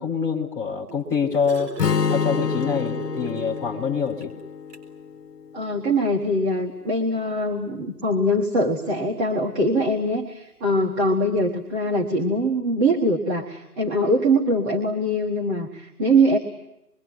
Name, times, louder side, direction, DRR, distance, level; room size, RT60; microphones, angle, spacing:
voice 1, 0.0-1.7 2.1-4.3, left 6 dB, 5° left, -4 dB, 1.0 m, -25 dB
sound 1, 0.9-3.8 4.2-4.3 4.7-4.9 6.0-6.1, right 6 dB, 35° right, 6.0 m, -35 dB
Strum, 1.8-5.9, left 7 dB, 75° left, 1.6 m, -28 dB
voice 2, 5.5-16.4, right 1 dB, 10° right, -1 dB, 1.4 m, -22 dB
26.5 x 23.0 x 9.3 m, 0.85 s
figure-of-eight pair, 155°, 48 cm